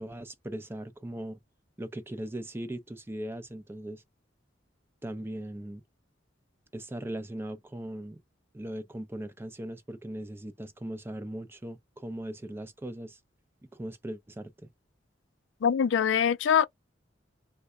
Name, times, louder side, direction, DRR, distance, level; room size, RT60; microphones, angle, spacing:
voice 1, 0.0-1.4 1.8-4.0 5.0-5.8 6.7-8.2 8.5-13.2 13.7-14.7, right 1 dB, 10° right, 0.4 m, -39 dB
voice 2, 15.6-16.7, left 8 dB, 75° left, 0.4 m, -23 dB
3.3 x 2.1 x 3.6 m
head